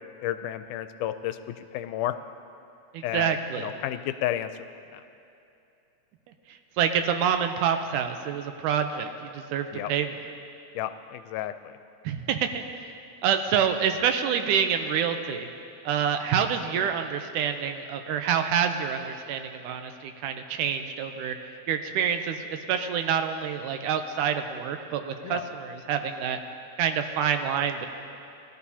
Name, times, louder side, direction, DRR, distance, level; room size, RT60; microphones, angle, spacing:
voice 1, 0.2-2.2 3.0-4.5 4.9-5.0 9.7-9.9 10.8-11.7 25.2-25.4, left 12 dB, 90° left, 10 dB, 2.1 m, -32 dB
voice 2, 2.9-3.7 6.5-10.2 12.0-12.6 13.2-15.5 15.8-21.4 21.7-26.4 26.8-27.9, right 8 dB, 90° right, 7 dB, 2.2 m, -27 dB
20.0 x 12.5 x 2.8 m, 2.8 s
omnidirectional pair, 3.6 m